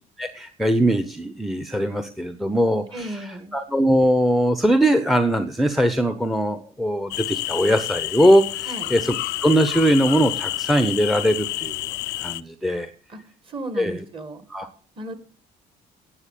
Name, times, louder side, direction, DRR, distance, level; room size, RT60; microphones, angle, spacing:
voice 1, 0.2-9.1 9.4-11.7 12.2-12.9 13.8-14.0 14.5-14.7, equal, ahead, 10 dB, 0.8 m, -21 dB
voice 2, 2.9-3.6 8.7-8.9 13.1-13.2 13.5-14.5 15.0-15.1, right 2 dB, 30° right, 9 dB, 2.0 m, -34 dB
sound 1, 7.1-12.4, left 18 dB, 90° left, 0.5 m, -29 dB
9.7 x 7.6 x 8.4 m, 0.43 s
cardioid pair, 110°, 17 cm